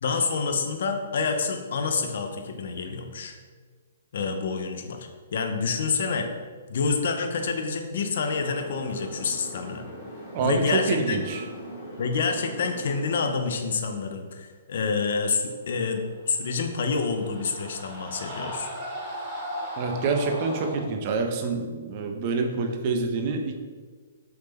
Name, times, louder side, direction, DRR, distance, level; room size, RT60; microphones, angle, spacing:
voice 1, 0.0-3.4 4.1-6.3 6.7-9.8 10.4-11.2 12.0-18.7, left 4 dB, 65° left, 5 dB, 0.4 m, -28 dB
sound 1, 8.2-13.2, right 1 dB, 30° left, 0.9 m, -41 dB
voice 2, 10.3-11.4 19.8-23.5, right 4 dB, 40° right, 4 dB, 0.4 m, -27 dB
sound 2, 16.3-20.8, equal, 20° right, 0.8 m, -37 dB
3.2 x 2.0 x 3.3 m, 1.5 s
hypercardioid pair, 150°, 0 cm